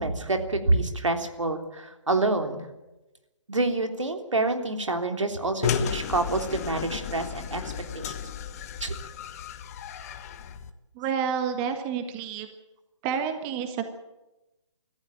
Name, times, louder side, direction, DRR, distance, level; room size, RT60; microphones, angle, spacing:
voice 1, 0.0-2.6 3.5-7.6 7.9-8.1 8.8-8.9, right 2 dB, 80° right, 6 dB, 3.4 m, -27 dB
sound 1, 5.6-10.7, left 7 dB, 30° left, 1.5 m, -33 dB
voice 2, 11.0-12.5 13.0-13.9, right 7 dB, 20° right, 7 dB, 1.6 m, -29 dB
26.0 x 14.5 x 9.1 m, 0.99 s
figure-of-eight pair, 145°, 16 cm